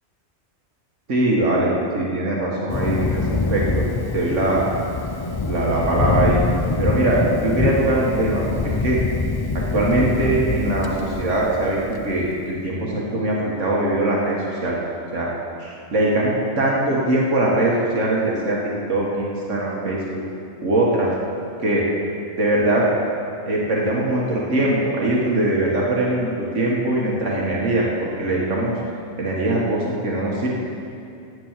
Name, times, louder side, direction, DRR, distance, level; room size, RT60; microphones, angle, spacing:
voice 1, 1.1-3.2 3.5-3.8 4.1-4.6 5.5-6.4 6.8-9.0 9.7-11.8 12.1-14.8 15.1-15.3 15.6-18.6 18.9-20.2 20.6-21.1 21.6-21.8 22.4-22.8 23.5-28.7 29.2-30.5, right 1 dB, 80° right, -4 dB, 1.9 m, -21 dB
Thunder, 2.7-12.3, left 3 dB, 40° left, 0.3 m, -24 dB
10.0 x 9.1 x 7.3 m, 2.5 s
omnidirectional pair, 1.2 m